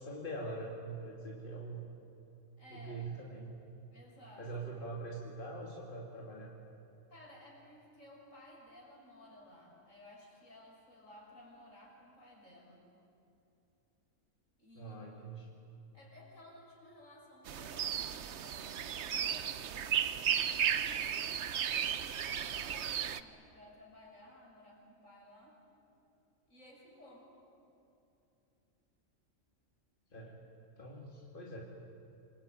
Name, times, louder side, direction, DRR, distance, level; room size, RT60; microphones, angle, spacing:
voice 1, 0.0-1.8 2.7-3.5 4.4-6.5 14.8-15.5 30.1-30.4 30.8-31.6, right 2 dB, 40° left, -2 dB, 2.8 m, -43 dB
voice 2, 2.6-3.1 3.9-4.8 7.1-12.8 14.6-15.4 15.9-25.6 26.5-27.3, left 1 dB, 65° left, -2 dB, 6.9 m, -57 dB
sound 1, 17.5-23.2, right 8 dB, 60° right, 1.0 m, -34 dB
27.5 x 23.0 x 9.2 m, 2.8 s
omnidirectional pair, 1.4 m